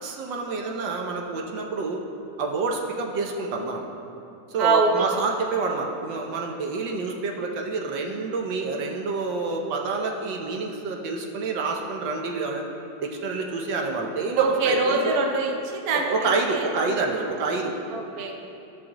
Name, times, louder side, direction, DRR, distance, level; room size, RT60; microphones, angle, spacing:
voice 1, 0.0-2.0 2.4-3.8 4.5-12.6 13.0-15.1 16.0-17.7, right 3 dB, 80° right, 1 dB, 1.5 m, -28 dB
voice 2, 4.6-5.2 14.4-16.1 16.5-16.9 17.2-17.3 17.9-18.3, right 4 dB, 60° right, 2 dB, 1.2 m, -24 dB
14.0 x 6.2 x 2.9 m, 2.7 s
omnidirectional pair, 2.0 m